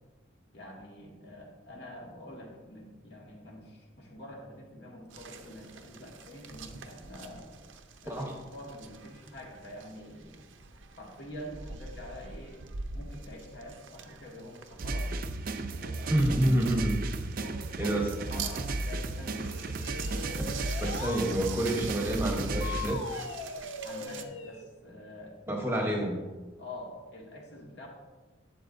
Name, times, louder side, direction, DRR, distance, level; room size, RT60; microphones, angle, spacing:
voice 1, 0.5-7.6 8.0-10.4 10.9-16.2 17.3-19.7 23.8-25.9 26.6-27.9, left 1 dB, 60° left, -2 dB, 2.0 m, -46 dB
sound 1, 5.1-24.2, right 5 dB, 85° right, 0.7 m, -46 dB
sound 2, 14.8-23.0, right 2 dB, 45° right, 0.4 m, -34 dB
voice 2, 16.1-17.0 17.8-18.1 20.4-20.5 20.8-23.0 25.5-26.2, right 1 dB, 10° right, 1 dB, 0.9 m, -28 dB
sound 3, 19.4-21.3 22.6-24.7, left 4 dB, 85° left, 0.9 m, -40 dB
11.5 x 7.7 x 2.6 m, 1.3 s
head